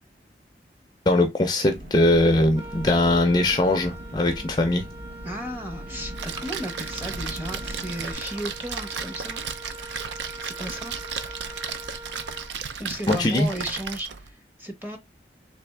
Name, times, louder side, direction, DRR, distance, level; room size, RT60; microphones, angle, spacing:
voice 1, 1.1-4.9 13.1-13.5, left 1 dB, 25° left, 0.4 m, -21 dB
Engine, 1.7-8.1, right 1 dB, 50° right, 1.0 m, -40 dB
Wind instrument woodwind instrument, 2.5-13.0, right 1 dB, 35° right, 1.6 m, -43 dB
voice 2, 5.2-9.4 10.4-10.9 12.8-15.0, equal, 10° right, 0.8 m, -34 dB
Splash splatter, 6.1-14.3, right 6 dB, 80° right, 0.5 m, -35 dB
3.4 x 3.0 x 3.2 m
head